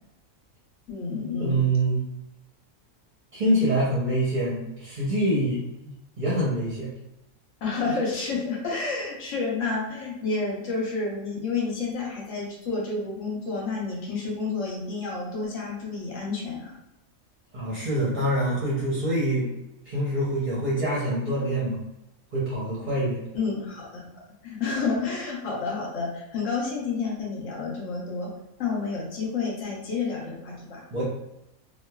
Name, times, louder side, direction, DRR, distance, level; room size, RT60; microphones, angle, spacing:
voice 1, 0.9-1.6 7.6-16.7 23.3-24.1 24.4-28.3 28.6-30.8, left 4 dB, 65° left, -3 dB, 1.0 m, -30 dB
voice 2, 1.4-2.0 3.3-6.9 17.5-19.5 19.9-21.8 22.3-23.2 30.9-31.0, right 1 dB, 45° right, -7 dB, 0.6 m, -25 dB
3.0 x 2.2 x 2.2 m, 0.89 s
omnidirectional pair, 1.5 m